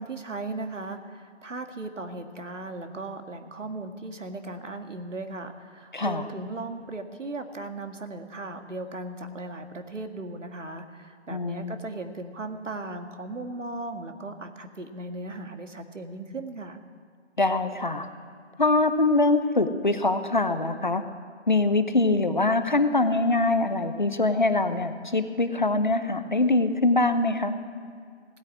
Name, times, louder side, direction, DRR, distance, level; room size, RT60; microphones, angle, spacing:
voice 1, 0.0-16.8, right 2 dB, 85° right, 6 dB, 1.9 m, -37 dB
voice 2, 5.9-6.3 11.3-11.7 17.4-18.1 18.6-21.0 21.5-27.5, left 2 dB, 40° left, 10 dB, 0.8 m, -23 dB
16.5 x 9.9 x 8.6 m, 2.1 s
figure-of-eight pair, 175°, 36 cm